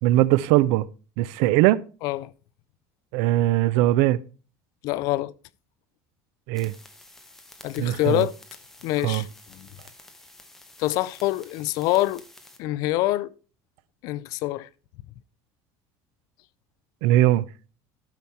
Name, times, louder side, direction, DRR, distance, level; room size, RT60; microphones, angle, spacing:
voice 1, 0.0-0.9 1.2-1.8 3.1-4.2 6.5-6.7 7.8-8.3 9.0-9.2 17.0-17.5, right 15 dB, 65° right, 0.4 m, -20 dB
voice 2, 2.0-2.3 4.8-5.3 7.6-8.3 8.8-9.7 10.8-12.2 12.6-13.3 14.0-14.7, left 16 dB, 50° left, 0.4 m, -25 dB
sound 1, 6.5-12.6, left 2 dB, 5° left, 0.8 m, -50 dB
12.0 x 5.7 x 4.3 m
cardioid pair, 180°, 8 cm